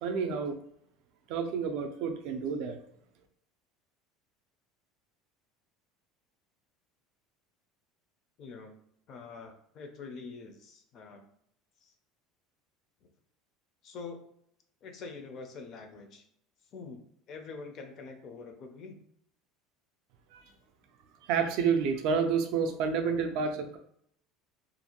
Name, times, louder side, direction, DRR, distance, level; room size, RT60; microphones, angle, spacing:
voice 1, 0.0-0.6 1.3-2.8 20.3-20.4 21.2-23.8, right 6 dB, 60° right, 5 dB, 0.3 m, -29 dB
voice 2, 8.4-8.7 9.1-11.2 11.8-11.9 13.0-13.1 13.8-14.3 14.8-16.3 16.7-17.0 17.3-19.0, left 4 dB, 35° left, 5 dB, 0.4 m, -45 dB
2.5 x 2.2 x 2.8 m, 0.67 s
cardioid pair, 160°, 0 cm